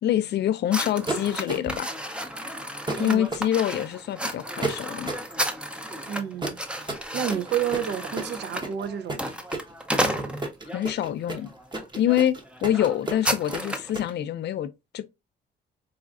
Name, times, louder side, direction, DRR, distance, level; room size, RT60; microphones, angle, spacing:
voice 1, 0.0-1.9 3.0-5.1 10.7-11.5 12.0-15.0, left 11 dB, 60° left, 0.4 m, -26 dB
sound 1, 0.7-10.8 11.4-11.7 12.0-12.2 12.4-13.9, equal, 5° right, 0.5 m, -32 dB
sound 2, 1.1-1.9 2.9-3.5 4.6-5.3 6.4-14.1, right 2 dB, 25° right, 0.9 m, -32 dB
voice 2, 6.1-6.9 7.1-9.3, right 9 dB, 60° right, 0.5 m, -30 dB
4.8 x 2.4 x 2.3 m
cardioid pair, 90°, 20 cm